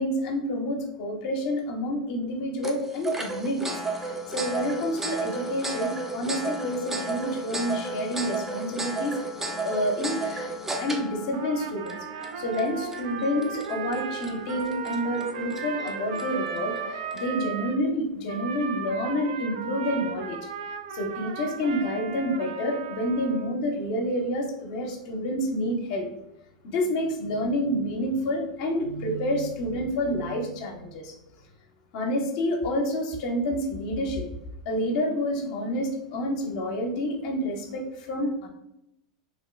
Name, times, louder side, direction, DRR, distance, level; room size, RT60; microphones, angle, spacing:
voice 1, 0.0-3.7 4.0-9.1 9.6-10.5 10.8-12.0 12.4-20.4 20.9-26.1 26.6-31.2 31.9-34.2 34.7-38.5, equal, 60° left, 1 dB, 0.6 m, -28 dB
sound 1, 2.6-17.4, right 2 dB, 10° right, 0.4 m, -34 dB
Trumpet, 11.3-17.8 18.3-23.6, right 7 dB, 70° right, 0.3 m, -36 dB
2.8 x 2.1 x 3.1 m, 0.84 s
hypercardioid pair, 100°, 4 cm